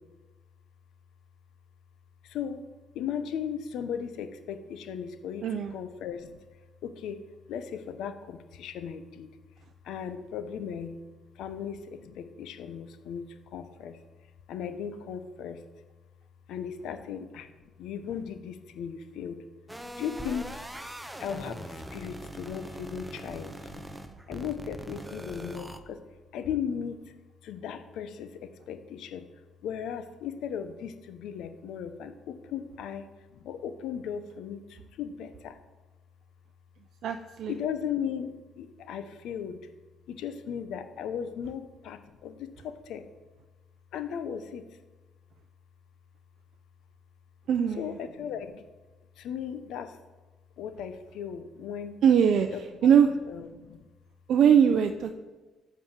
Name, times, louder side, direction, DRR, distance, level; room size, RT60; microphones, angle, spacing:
voice 1, 2.2-2.7 2.9-6.4 6.8-7.2 7.5-9.3 9.8-11.0 11.3-14.0 14.5-15.6 16.5-17.5 17.8-19.4 20.0-20.6 21.2-23.8 24.3-26.0 26.3-27.1 27.4-29.3 29.6-35.6 37.5-39.6 40.1-43.1 43.9-44.7 47.8-48.6 49.2-50.0 50.6-52.0 52.5-53.8, left 8 dB, 85° left, 10 dB, 0.9 m, -37 dB
voice 2, 5.4-5.7 37.0-37.5 47.5-47.8 52.0-52.5 52.8-53.1 54.3-55.1, right 8 dB, 75° right, 6 dB, 0.6 m, -21 dB
sound 1, 19.7-25.8, right 1 dB, 5° right, 1.0 m, -41 dB
14.5 x 5.0 x 7.5 m, 1.2 s
cardioid pair, 90°, 0 cm